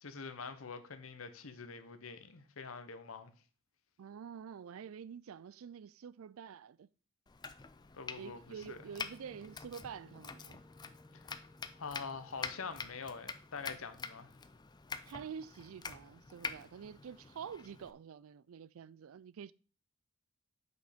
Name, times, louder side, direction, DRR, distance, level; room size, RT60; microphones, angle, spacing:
voice 1, 0.0-3.3 7.9-8.4 8.7-8.8 11.1-11.3 11.8-14.3, left 5 dB, 80° left, 0.9 m, -45 dB
voice 2, 4.0-6.9 8.2-10.6 15.0-19.5, right 7 dB, 80° right, 0.4 m, -47 dB
Domestic sounds home sounds, 7.3-17.9, left 5 dB, 20° left, 0.4 m, -47 dB
Wind instrument woodwind instrument, 8.7-13.4, left 1 dB, 10° right, 1.0 m, -62 dB
6.3 x 5.3 x 5.0 m
head